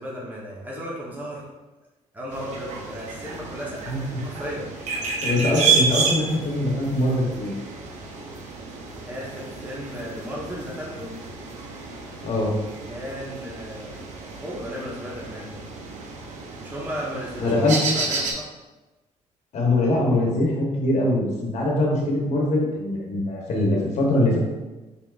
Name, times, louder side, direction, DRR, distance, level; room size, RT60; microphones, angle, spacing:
voice 1, 0.0-1.5 2.1-4.7 9.1-11.1 12.9-14.0 14.4-15.6 16.4-17.5 17.9-18.5, equal, 15° right, -5 dB, 1.0 m, -35 dB
sound 1, 2.3-18.3, right 4 dB, 70° right, 0.7 m, -30 dB
voice 2, 5.2-7.5 12.2-12.5 17.4-18.0 19.5-24.4, left 1 dB, 60° left, -1 dB, 1.0 m, -22 dB
4.5 x 3.5 x 2.4 m, 1.1 s
cardioid pair, 85°, 13 cm